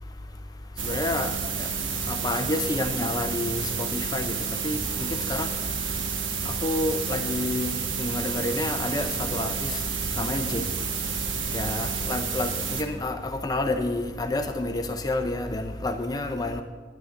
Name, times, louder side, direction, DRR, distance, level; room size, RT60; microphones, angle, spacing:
voice 1, 0.8-1.7 2.1-4.4 4.6-5.5 6.5-9.8 10.2-10.6 11.5-16.6, left 2 dB, 20° left, 7 dB, 0.5 m, -29 dB
sound 1, 0.8-12.8, right 5 dB, 80° right, 1.2 m, -30 dB
9.5 x 9.1 x 6.5 m, 1.4 s
head